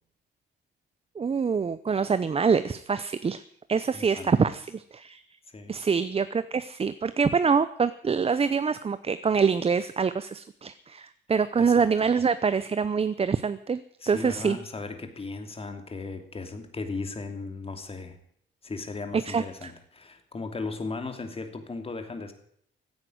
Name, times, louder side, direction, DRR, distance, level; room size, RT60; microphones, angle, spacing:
voice 1, 1.2-3.4 3.7-5.2 5.7-14.6 19.3-19.7, right 5 dB, 30° right, 13 dB, 0.7 m, -25 dB
voice 2, 3.9-4.4 5.5-5.7 11.6-11.9 14.0-18.2 18.6-22.3, left 3 dB, 30° left, 6 dB, 2.9 m, -37 dB
15.5 x 9.7 x 9.4 m, 0.68 s
cardioid pair, 90°, 20 cm